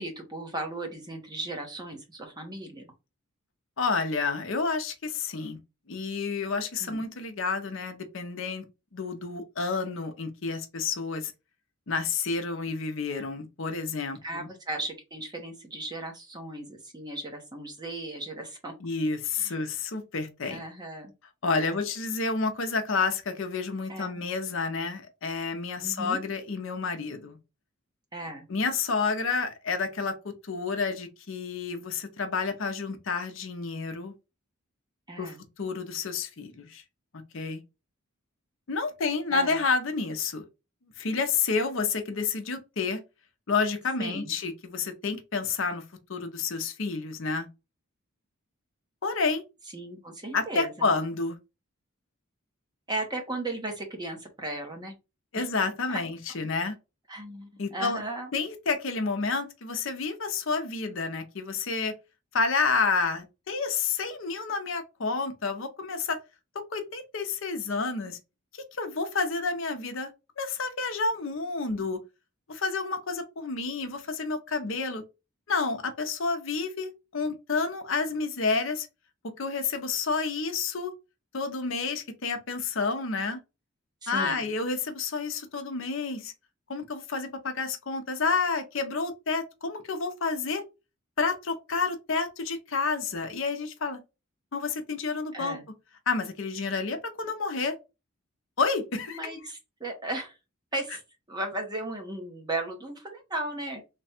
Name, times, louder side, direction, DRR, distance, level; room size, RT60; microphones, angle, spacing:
voice 1, 0.0-2.9 6.8-7.0 14.2-18.7 19.3-19.6 20.5-21.1 21.6-21.8 23.9-24.2 25.8-26.2 28.1-28.5 35.1-35.4 39.3-39.6 44.0-44.3 49.7-50.9 52.9-55.0 55.3-55.5 55.9-56.0 57.1-58.3 84.0-84.5 95.3-95.6 99.1-100.4 100.7-101.0 101.3-103.8, right 2 dB, 20° right, 0.9 m, -36 dB
voice 2, 3.8-5.6 5.9-8.6 8.9-11.3 11.9-14.5 18.8-20.6 21.4-27.4 28.5-34.1 35.2-35.3 35.6-36.8 37.3-37.6 38.7-40.4 41.0-43.0 43.5-45.8 46.1-47.5 49.0-49.4 50.3-51.4 55.3-56.7 57.6-58.0 58.3-61.9 62.3-66.2 66.5-68.2 68.7-70.1 70.4-72.0 72.5-75.0 75.5-78.9 79.2-80.9 81.3-83.4 84.1-86.3 86.7-90.6 91.2-94.0 94.5-95.6 96.1-97.8 98.6-99.2, left 4 dB, 60° left, 0.6 m, -30 dB
3.3 x 2.3 x 4.2 m
head